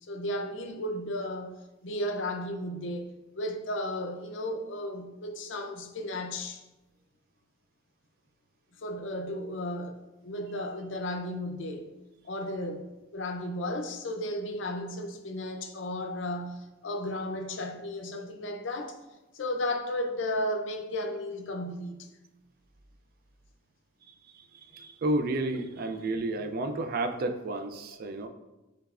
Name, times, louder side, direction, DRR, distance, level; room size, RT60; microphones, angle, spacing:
voice 1, 0.1-3.1 3.4-6.6 8.8-11.9 12.2-19.0 19.3-22.1, left 1 dB, 60° left, 0.5 m, -34 dB
voice 2, 24.1-28.3, right 2 dB, 45° right, 0.3 m, -32 dB
6.7 x 3.3 x 2.4 m
head